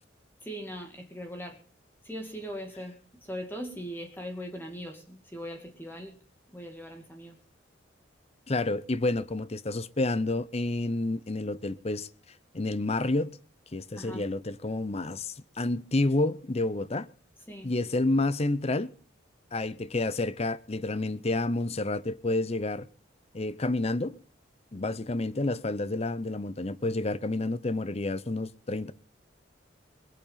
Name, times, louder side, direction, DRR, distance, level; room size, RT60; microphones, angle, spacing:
voice 1, 0.4-1.6 2.0-2.9 3.2-6.2 6.5-7.4 13.9-14.2 17.5-17.7, equal, 10° left, 2.3 m, -40 dB
voice 2, 8.5-12.1 12.5-13.4 13.7-17.1 17.6-18.9 19.5-22.9 23.3-24.2 24.7-28.9, left 2 dB, 35° left, 0.7 m, -29 dB
21.5 x 8.7 x 5.7 m
head